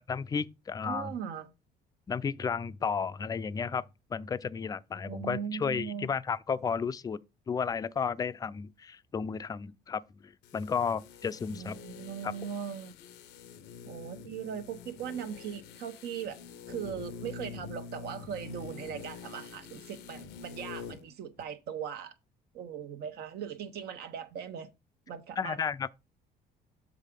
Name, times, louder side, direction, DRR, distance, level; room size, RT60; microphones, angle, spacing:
voice 1, 0.0-1.1 2.1-3.8 4.1-7.2 7.5-11.8 12.2-12.3 25.4-25.9, left 6 dB, 20° left, 0.4 m, -33 dB
voice 2, 0.8-1.5 5.0-6.1 11.5-12.9 13.8-16.4 16.7-22.1 22.5-24.7 25.1-25.6, right 8 dB, 70° right, 1.1 m, -39 dB
sound 1, 10.4-21.1 21.4-21.5, left 6 dB, 85° left, 0.8 m, -46 dB
7.4 x 3.7 x 5.2 m
cardioid pair, 110°, 17 cm